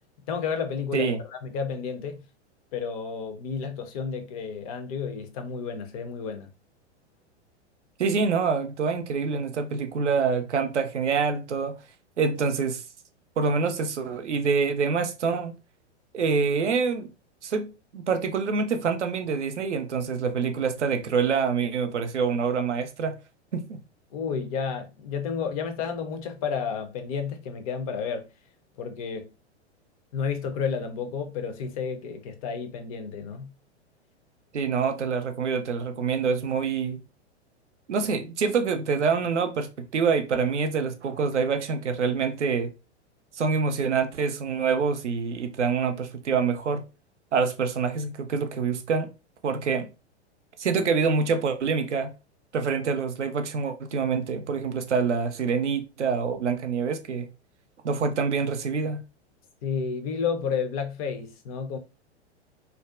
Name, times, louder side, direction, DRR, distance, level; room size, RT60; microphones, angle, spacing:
voice 1, 0.3-2.2 2.7-6.5 24.1-28.3 28.8-29.3 30.1-33.5 59.6-61.8, left 6 dB, 35° left, 0.4 m, -31 dB
voice 2, 8.0-11.8 12.2-12.8 13.4-15.6 16.1-17.1 17.4-23.1 23.5-23.8 34.5-37.0 37.9-42.7 43.3-46.8 47.3-49.1 49.4-49.9 50.6-52.1 52.5-57.3 57.8-59.0, right 5 dB, 85° right, 0.5 m, -26 dB
2.5 x 2.2 x 2.3 m
figure-of-eight pair, 100°, 34 cm